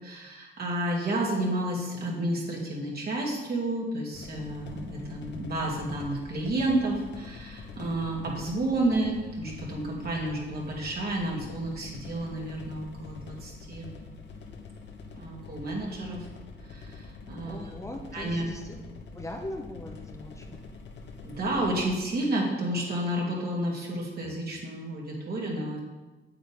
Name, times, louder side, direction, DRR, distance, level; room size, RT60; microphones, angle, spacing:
voice 1, 0.0-13.9 15.1-16.3 16.6-17.6 18.1-18.5 21.2-25.8, right 1 dB, 50° right, -3 dB, 2.7 m, -31 dB
sound 1, 4.1-22.0, left 4 dB, 60° left, 1.2 m, -45 dB
voice 2, 17.4-18.8 19.1-20.6, left 1 dB, 15° left, 1 dB, 1.0 m, -40 dB
8.6 x 8.0 x 3.6 m, 1.2 s
cardioid pair, 90°, 20 cm